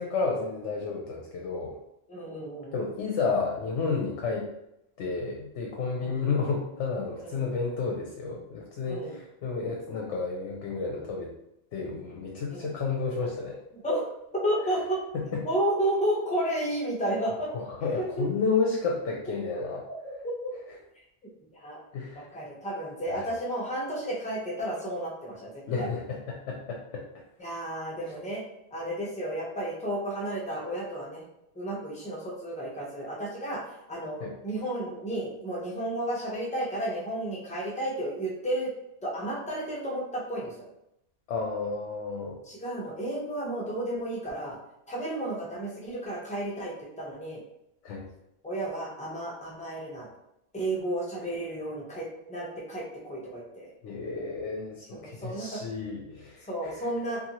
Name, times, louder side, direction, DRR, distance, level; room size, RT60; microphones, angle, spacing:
voice 1, 0.0-1.7 2.7-4.5 5.0-11.3 11.7-13.6 15.1-15.5 17.5-19.8 21.9-22.3 23.1-23.3 25.7-27.0 28.0-28.1 34.2-34.3 41.3-42.4 47.8-48.1 53.8-56.9, left 4 dB, 70° left, -1 dB, 0.8 m, -31 dB
voice 2, 2.1-2.8 6.0-6.2 7.2-7.5 8.9-9.2 12.5-12.7 13.8-14.1 14.3-15.0 15.4-17.5 17.9-18.3 19.7-20.5 21.2-21.8 22.2-25.9 27.4-28.4 28.7-31.2 31.6-33.6 33.9-38.7 39.0-40.5 42.5-44.6 44.9-47.4 48.4-50.1 50.5-53.7 55.0-55.6 56.5-57.2, right 1 dB, 10° left, -4 dB, 0.4 m, -32 dB
2.7 x 2.5 x 2.8 m, 0.83 s
omnidirectional pair, 1.3 m